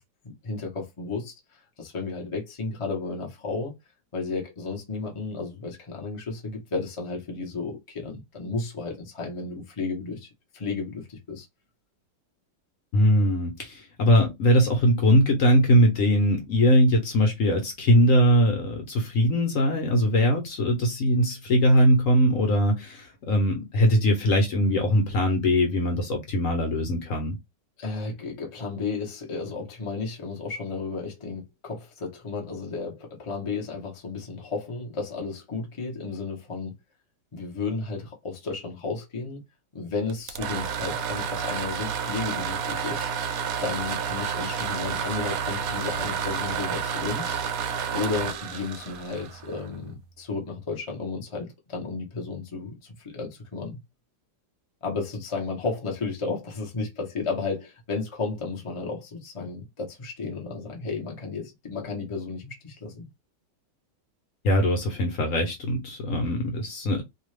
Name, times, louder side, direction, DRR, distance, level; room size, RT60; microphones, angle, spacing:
voice 1, 0.4-3.8 4.1-11.5 27.8-36.8 37.3-39.4 39.7-43.1 43.6-47.4 47.9-53.8 54.8-63.1, left 4 dB, 30° left, 0.6 m, -33 dB
voice 2, 12.9-27.4 64.4-67.0, equal, 60° left, 1.0 m, -21 dB
sound 1, 40.1-49.9, right 7 dB, 70° right, 0.8 m, -30 dB
2.8 x 2.3 x 3.2 m
omnidirectional pair, 1.9 m